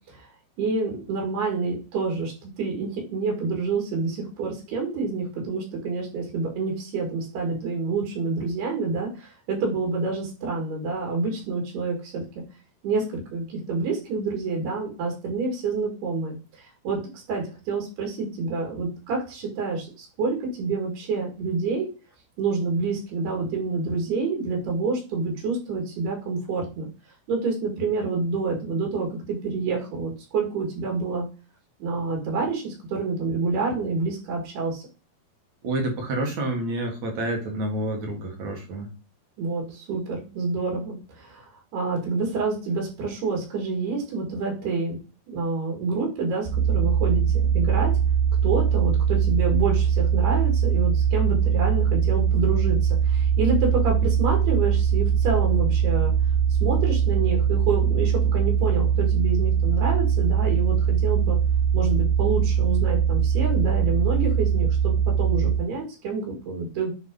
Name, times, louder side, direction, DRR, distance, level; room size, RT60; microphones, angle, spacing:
voice 1, 0.6-12.3 12.8-21.9 22.4-26.9 27.3-31.3 31.8-34.8 39.4-45.0 45.3-47.9 48.4-56.1 56.6-61.4 61.7-66.9, right 4 dB, 90° right, 0 dB, 4.2 m, -28 dB
voice 2, 35.6-38.9, right 1 dB, 55° right, 1 dB, 2.6 m, -28 dB
sound 1, 46.5-65.6, right 8 dB, 70° right, 2.1 m, -21 dB
9.8 x 3.5 x 3.9 m, 0.33 s
omnidirectional pair, 4.5 m